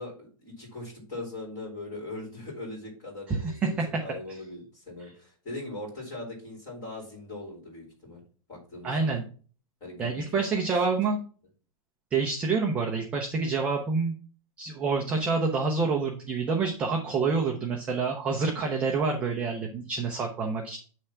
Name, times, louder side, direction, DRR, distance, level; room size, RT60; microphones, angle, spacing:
voice 1, 0.0-8.2 8.5-9.2 9.8-10.6 10.9-11.0, left 2 dB, 20° left, -2 dB, 3.1 m, -40 dB
voice 2, 8.8-9.2 10.0-11.2 12.1-14.1 14.6-20.8, right 4 dB, 5° right, 1 dB, 0.3 m, -27 dB
8.4 x 3.3 x 5.7 m, 0.40 s
supercardioid pair, 180°, 18 cm